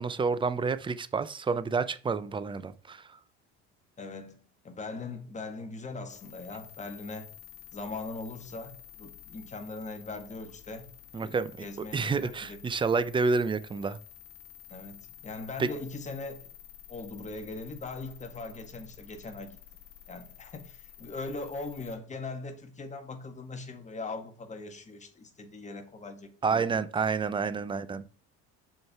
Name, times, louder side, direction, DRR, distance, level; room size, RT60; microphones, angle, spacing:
voice 1, 0.0-3.0 11.1-11.7 11.9-14.0 15.6-15.7 26.4-28.1, right 4 dB, 15° right, 0.5 m, -29 dB
voice 2, 4.0-7.3 7.7-10.9 11.2-12.6 14.7-15.0 15.2-16.5 16.9-19.6 20.1-26.7, left 3 dB, 25° left, 1.5 m, -40 dB
sound 1, 6.1-22.0, left 11 dB, 45° left, 1.9 m, -51 dB
6.3 x 4.6 x 4.7 m
supercardioid pair, 110°, 31 cm